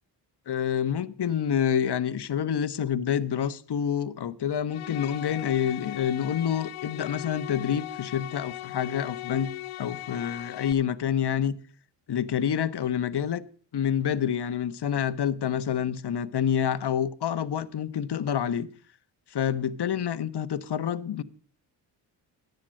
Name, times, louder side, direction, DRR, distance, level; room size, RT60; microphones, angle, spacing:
voice 1, 0.5-11.6 12.1-13.4 13.7-18.7 19.3-21.2, left 8 dB, 55° left, 1.1 m, -28 dB
sound 1, 4.7-10.7, left 17 dB, 85° left, 0.8 m, -39 dB
14.5 x 9.8 x 6.3 m
supercardioid pair, 45°, 48 cm